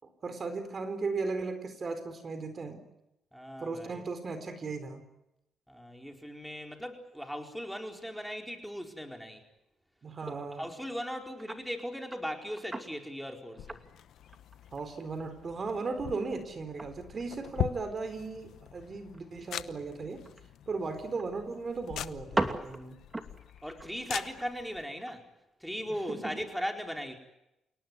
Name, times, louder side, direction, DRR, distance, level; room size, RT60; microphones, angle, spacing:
voice 1, 0.0-2.8 3.6-5.0 10.0-10.7 14.7-20.2 20.7-23.0 25.9-26.4, right 4 dB, 40° right, 10 dB, 4.3 m, -36 dB
voice 2, 3.3-4.0 5.7-9.4 10.3-13.8 23.6-25.2 25.6-27.1, equal, ahead, 4 dB, 4.6 m, -38 dB
sound 1, 10.6-10.8 11.4-11.7 12.0-13.1 13.5-15.0 15.2-15.3 15.8-17.9 18.1-18.5 18.8-18.9 19.1-19.2 20.2-21.3 21.5-21.6 21.9-25.3 25.7-25.8, right 2 dB, 20° right, 2.7 m, -38 dB
sound 2, 13.6-24.9, left 11 dB, 75° left, 1.0 m, -42 dB
29.0 x 18.5 x 9.4 m, 0.89 s
cardioid pair, 90°, 0 cm